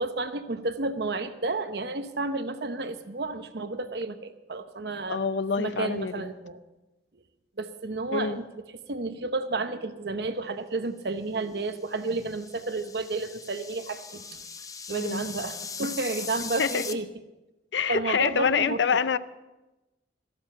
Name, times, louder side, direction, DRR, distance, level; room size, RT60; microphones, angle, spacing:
voice 1, 0.0-5.3 5.6-6.6 7.6-8.6 8.9-14.4 14.9-17.1 17.9-18.8, right 3 dB, 65° right, 1.0 m, -31 dB
voice 2, 5.1-6.3 8.1-8.4 14.9-15.3 16.6-16.8 17.7-19.2, left 6 dB, 80° left, 0.5 m, -26 dB
sound 1, 11.8-16.9, left 5 dB, 20° left, 0.6 m, -39 dB
14.0 x 12.5 x 5.7 m
head